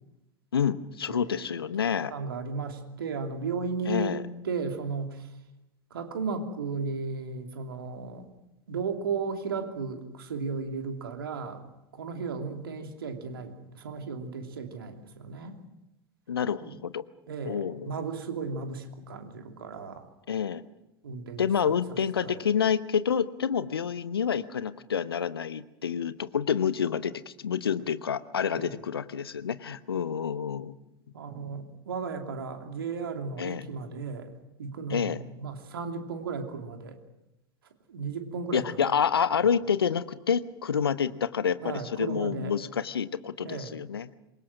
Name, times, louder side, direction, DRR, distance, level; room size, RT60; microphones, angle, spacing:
voice 1, 0.5-2.1 3.9-4.2 16.3-17.0 17.5-17.9 20.3-20.6 21.4-30.7 33.4-33.6 34.9-35.2 38.5-44.1, left 7 dB, 70° left, 15 dB, 1.0 m, -28 dB
voice 2, 1.1-1.5 2.1-4.2 4.4-5.3 5.9-8.3 8.7-11.6 11.9-15.6 16.6-16.8 17.3-20.1 21.0-21.5 22.2-22.5 28.5-28.8 31.1-34.3 34.6-37.0 37.9-38.6 41.6-42.5 43.4-43.8, right 4 dB, 70° right, 5 dB, 3.0 m, -35 dB
26.5 x 23.5 x 6.2 m, 0.92 s
figure-of-eight pair, 85°, 13 cm